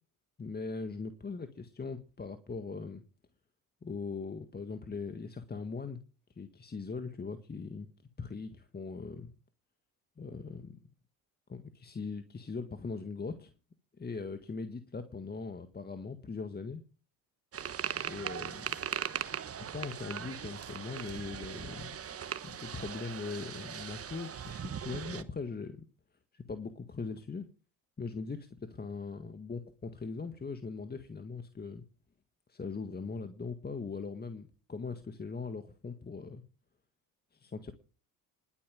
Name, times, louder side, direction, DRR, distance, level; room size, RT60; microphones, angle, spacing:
voice 1, 0.4-3.0 3.8-6.0 6.4-7.9 8.2-9.3 10.2-10.8 11.5-13.5 13.9-16.8 18.0-18.8 19.7-22.0 22.4-25.9 26.3-27.5 28.0-31.8 32.5-36.4 37.3-37.7, left 4 dB, 25° left, 9 dB, 1.7 m, -40 dB
sound 1, 17.5-25.2, right 8 dB, 35° right, 1.3 m, -39 dB
20.0 x 8.8 x 7.7 m, 0.41 s
supercardioid pair, 70°, 38 cm